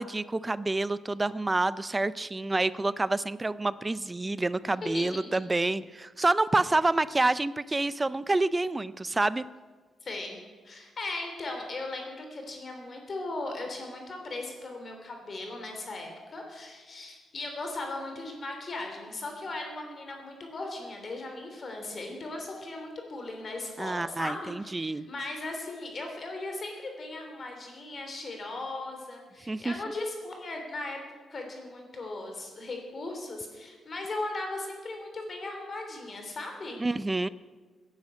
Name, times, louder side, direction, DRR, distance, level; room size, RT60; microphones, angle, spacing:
voice 1, 0.0-9.4 23.8-25.1 29.5-29.7 36.8-37.3, right 2 dB, 15° right, 17 dB, 0.4 m, -28 dB
voice 2, 4.6-5.1 10.0-10.4 10.6-31.0 31.3-36.8, left 2 dB, 35° left, 3 dB, 3.2 m, -38 dB
15.5 x 10.5 x 8.4 m, 1.4 s
wide cardioid pair, 165°, 0 cm